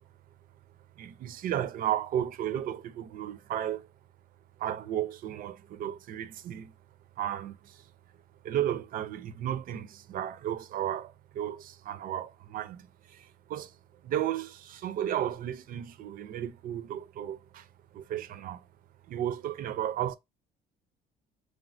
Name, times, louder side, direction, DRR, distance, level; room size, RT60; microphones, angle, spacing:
voice 1, 1.0-3.9 4.6-6.7 7.2-7.8 8.4-13.7 14.0-17.7 17.9-18.6 19.1-20.2, right 11 dB, 55° right, 0.4 m, -34 dB
3.1 x 2.1 x 2.5 m
cardioid pair, 110°, 17 cm